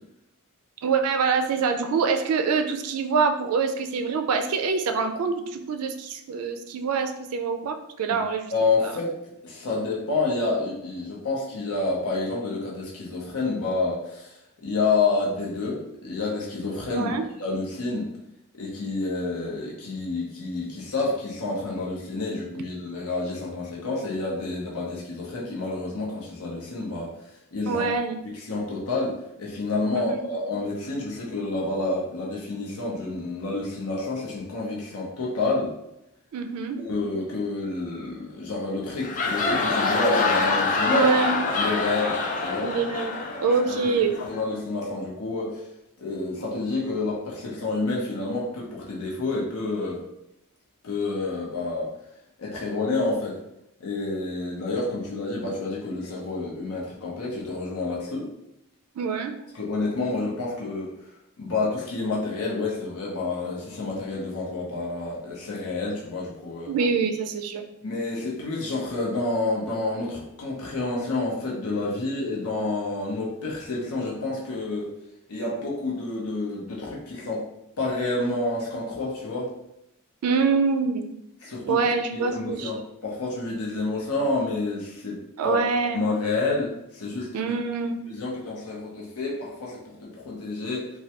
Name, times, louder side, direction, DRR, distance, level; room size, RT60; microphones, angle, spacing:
voice 1, 0.8-8.5 8.8-8.9 16.9-17.2 27.6-28.2 29.9-30.2 36.3-36.8 40.9-41.4 42.6-44.1 59.0-59.3 66.7-67.7 80.2-81.1 81.7-82.7 85.4-86.0 87.3-87.9, right 5 dB, 85° right, 6 dB, 0.3 m, -25 dB
voice 2, 8.5-9.1 9.4-18.1 18.5-27.8 28.2-35.7 36.8-41.1 41.6-42.1 42.4-42.7 43.7-43.8 44.2-45.7 46.0-50.0 50.8-51.9 52.4-53.3 53.8-58.3 59.5-60.9 61.4-66.7 67.8-74.9 75.3-77.4 77.8-79.5 81.4-81.8 82.1-85.6 85.9-87.3 88.0-90.9, left 3 dB, 85° left, -3 dB, 0.7 m, -29 dB
sound 1, 38.9-44.4, left 3 dB, 35° left, 0.4 m, -26 dB
3.2 x 2.2 x 2.8 m, 0.83 s
head